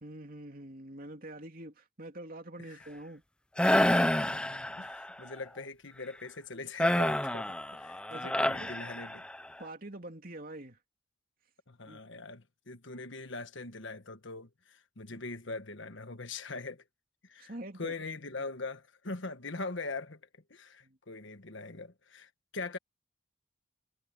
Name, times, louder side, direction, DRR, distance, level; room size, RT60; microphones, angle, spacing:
voice 1, 0.0-3.2 8.1-8.7 9.6-10.8 11.9-12.0 15.1-15.2 17.4-17.9 20.8-21.0, right 1 dB, 45° right, 3.0 m, -45 dB
sound 1, 3.6-5.1 6.8-9.5, left 1 dB, 5° left, 0.4 m, -28 dB
voice 2, 4.2-9.2 11.7-16.8 17.2-17.5 17.8-20.2 20.5-22.8, left 3 dB, 60° left, 1.4 m, -42 dB
head